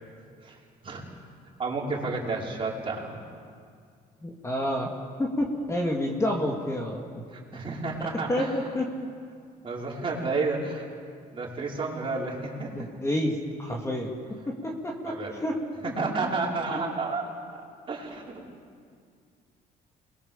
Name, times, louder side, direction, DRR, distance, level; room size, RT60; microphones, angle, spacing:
voice 1, 1.6-3.2 7.3-8.5 9.6-10.9 11.3-12.7 15.0-15.3 15.8-17.2 17.5-17.6 17.9-18.4, right 3 dB, 30° right, -3 dB, 5.6 m, -31 dB
voice 2, 4.2-4.9 5.2-7.0 8.0-8.9 12.7-15.9 16.2-16.3 16.7-16.8, left 1 dB, 15° left, 0 dB, 2.7 m, -29 dB
28.5 x 22.0 x 7.4 m, 2.2 s
cardioid pair, 110°, 17 cm